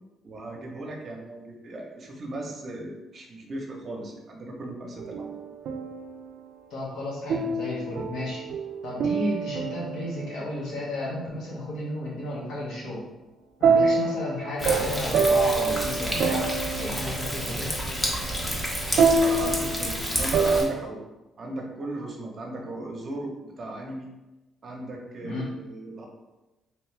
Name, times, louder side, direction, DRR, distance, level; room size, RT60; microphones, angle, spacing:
voice 1, 0.2-5.4 18.9-21.0 21.4-24.1 24.6-26.1, right 1 dB, 50° right, 1 dB, 0.8 m, -37 dB
sound 1, 5.0-6.2 7.3-10.5 13.6-20.7, right 4 dB, 75° right, 0.3 m, -26 dB
voice 2, 6.7-8.4 8.8-13.1 13.6-16.5 16.8-17.8 25.2-25.5, left 1 dB, 80° left, -5 dB, 1.3 m, -33 dB
Thunder, 14.6-20.6, equal, 20° left, 0.8 m, -30 dB
3.2 x 3.0 x 3.2 m, 1.1 s
cardioid pair, 90°, 0 cm